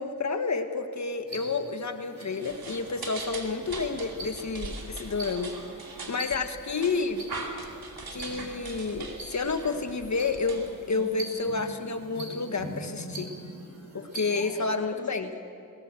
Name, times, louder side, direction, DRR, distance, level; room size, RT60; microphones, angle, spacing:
voice 1, 0.0-5.5 6.1-7.3 8.1-13.3 13.9-15.3, left 4 dB, 50° left, 7 dB, 1.4 m, -30 dB
sound 1, 1.3-14.5, right 1 dB, 50° right, 4.9 m, -44 dB
sound 2, 2.4-11.4, right 3 dB, 80° right, 2.6 m, -41 dB
voice 2, 6.6-7.0 7.3-8.3 14.3-15.4, left 1 dB, 20° left, -4 dB, 2.3 m, -48 dB
20.0 x 18.0 x 7.5 m, 2.6 s
wide cardioid pair, 120°, 36 cm